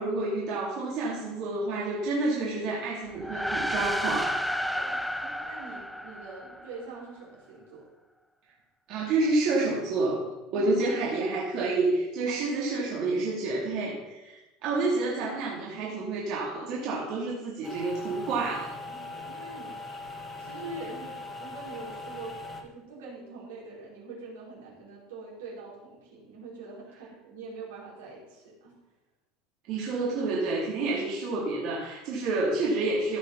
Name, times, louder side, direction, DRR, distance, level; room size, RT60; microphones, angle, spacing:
voice 1, 0.0-4.4 8.9-18.7 29.7-33.2, right 3 dB, 60° right, -5 dB, 2.7 m, -29 dB
sound 1, 3.1-6.8, equal, ahead, 0.8 m, -31 dB
voice 2, 4.7-7.8 10.5-10.8 12.3-13.1 18.9-28.7, right 3 dB, 85° right, -5 dB, 4.4 m, -44 dB
sound 2, 17.6-22.6, left 2 dB, 20° left, 1.9 m, -40 dB
15.0 x 5.7 x 5.6 m, 1.0 s
hypercardioid pair, 90°, 0 cm